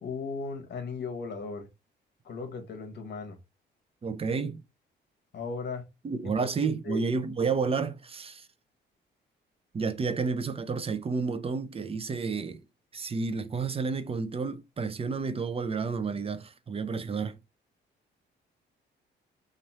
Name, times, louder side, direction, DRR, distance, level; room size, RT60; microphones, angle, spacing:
voice 1, 0.0-1.7 2.2-3.4 5.3-5.8 6.2-7.0, left 4 dB, 60° left, 1.2 m, -37 dB
voice 2, 4.0-4.6 6.0-8.5 9.7-12.6 12.9-17.4, right 5 dB, 30° right, 0.6 m, -30 dB
3.0 x 2.6 x 4.2 m
cardioid pair, 90°, 20 cm